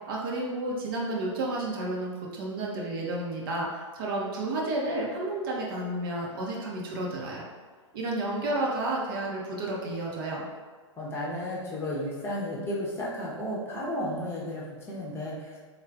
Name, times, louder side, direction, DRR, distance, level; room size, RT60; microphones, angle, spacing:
voice 1, 0.1-3.7 3.9-7.5 7.9-10.4, right 2 dB, 45° right, -3 dB, 0.8 m, -31 dB
voice 2, 11.0-15.7, left 1 dB, 15° left, -6 dB, 0.8 m, -33 dB
3.6 x 2.4 x 3.4 m, 1.4 s
figure-of-eight pair, 105°, 16 cm